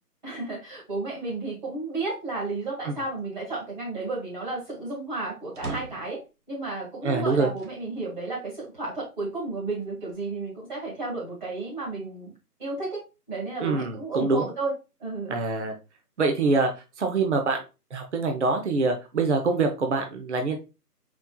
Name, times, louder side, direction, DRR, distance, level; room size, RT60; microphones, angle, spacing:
voice 1, 0.2-6.2 6.5-12.3 12.6-13.0 13.3-14.7 15.0-15.4, right 3 dB, 30° right, -4 dB, 1.8 m, -32 dB
sound 1, 5.5-6.2 7.3-7.8 8.5-8.6 9.8-10.6, right 3 dB, 70° right, 1.2 m, -40 dB
voice 2, 7.0-7.5 13.6-14.5 15.3-15.7 16.2-17.6 17.9-20.6, right 3 dB, 45° right, 4 dB, 0.8 m, -25 dB
4.3 x 4.3 x 2.3 m, 0.29 s
figure-of-eight pair, 160°, 47 cm